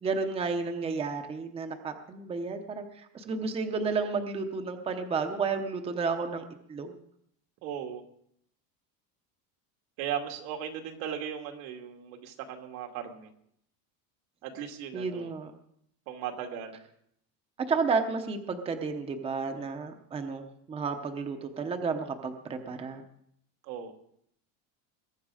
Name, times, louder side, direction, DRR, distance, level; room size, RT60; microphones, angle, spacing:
voice 1, 0.0-6.4 6.7-7.0 14.9-15.5 17.7-23.0, right 4 dB, 15° right, 6 dB, 0.8 m, -32 dB
voice 2, 7.6-8.0 10.0-13.3 14.4-15.3 16.1-16.8 23.6-23.9, right 9 dB, 85° right, 3 dB, 2.4 m, -37 dB
21.5 x 9.3 x 5.0 m, 0.70 s
cardioid pair, 175°, 42 cm